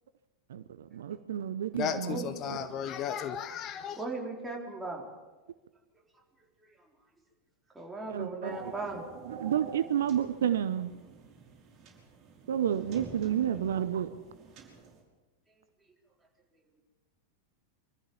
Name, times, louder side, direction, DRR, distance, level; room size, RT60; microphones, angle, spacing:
voice 1, 0.5-2.6 8.1-8.6 9.3-10.9 12.5-14.1, right 9 dB, 60° right, 0.8 m, -30 dB
voice 2, 1.8-4.0, left 8 dB, 35° left, 0.9 m, -34 dB
voice 3, 3.9-5.1 6.6-6.7 7.7-9.0, right 2 dB, 10° right, 4.3 m, -37 dB
sound 1, 8.5-15.0, right 5 dB, 35° right, 5.7 m, -48 dB
24.5 x 14.5 x 7.3 m
figure-of-eight pair, 90°, 0 cm